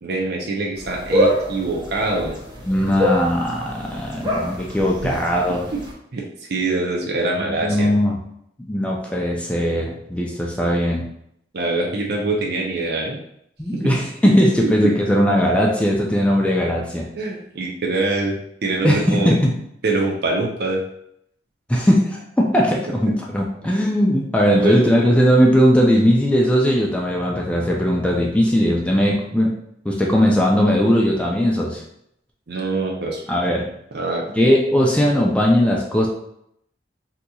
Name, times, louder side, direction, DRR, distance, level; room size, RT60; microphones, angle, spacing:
voice 1, 0.0-2.4 5.0-5.1 5.5-5.8 6.1-6.2 6.5-7.9 11.5-13.2 14.2-14.3 17.2-19.3 19.8-20.8 23.7-23.8 24.5-24.9 32.5-33.2 33.9-34.2, right 2 dB, 60° right, -1 dB, 0.6 m, -24 dB
sound 1, 0.8-5.9, equal, 25° right, 0.8 m, -25 dB
voice 2, 2.7-5.7 7.6-8.2 8.6-11.1 13.6-17.1 18.8-19.5 21.7-29.5 29.8-31.8 33.3-33.7 34.4-36.1, equal, 5° left, -2 dB, 0.4 m, -18 dB
3.9 x 2.8 x 2.3 m, 0.75 s
head